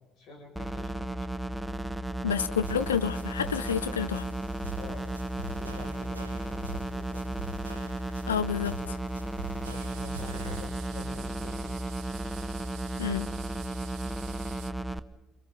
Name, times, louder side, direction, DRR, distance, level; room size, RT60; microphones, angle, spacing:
voice 1, 0.2-1.4 4.7-7.5 9.6-11.6, left 2 dB, 50° left, 0 dB, 7.2 m, -47 dB
sound 1, 0.6-15.0, right 1 dB, 5° right, 1.1 m, -34 dB
voice 2, 2.2-4.3 8.3-9.0 13.0-13.3, left 7 dB, 80° left, 12 dB, 0.8 m, -29 dB
sound 2, 2.6-10.6, right 3 dB, 85° right, 0.9 m, -44 dB
sound 3, 9.6-14.7, right 13 dB, 60° right, 1.1 m, -48 dB
29.0 x 28.5 x 4.2 m, 1.0 s
figure-of-eight pair, 50°, 0 cm